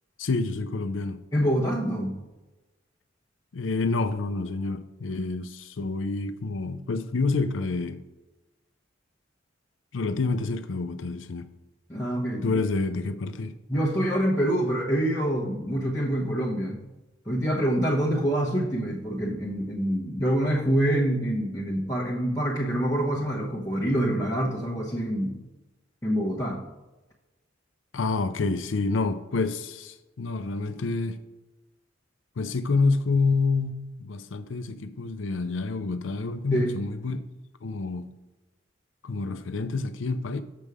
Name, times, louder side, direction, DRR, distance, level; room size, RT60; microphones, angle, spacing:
voice 1, 0.2-1.2 3.5-8.0 9.9-11.5 12.4-13.6 27.9-31.2 32.4-37.2 37.6-38.1 39.0-40.4, left 3 dB, 80° left, 0.5 m, -28 dB
voice 2, 1.3-2.2 11.9-12.6 13.7-16.8 17.2-25.4 26.0-26.6 36.5-36.7, equal, 15° left, 1.0 m, -26 dB
6.9 x 5.3 x 4.8 m
head